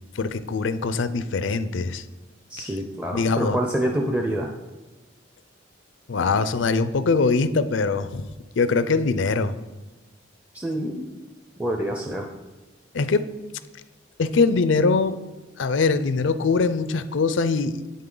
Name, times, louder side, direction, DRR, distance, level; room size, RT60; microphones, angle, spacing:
voice 1, 0.2-2.0 2.6-2.7 3.1-3.6 6.1-8.2 8.6-9.5 12.9-13.2 14.2-15.2 15.6-17.8, left 4 dB, 75° left, 13 dB, 0.5 m, -22 dB
voice 2, 2.5-4.5 10.5-11.2 11.6-12.3, right 1 dB, 10° right, 1 dB, 0.5 m, -27 dB
9.4 x 8.6 x 3.9 m, 1.1 s
head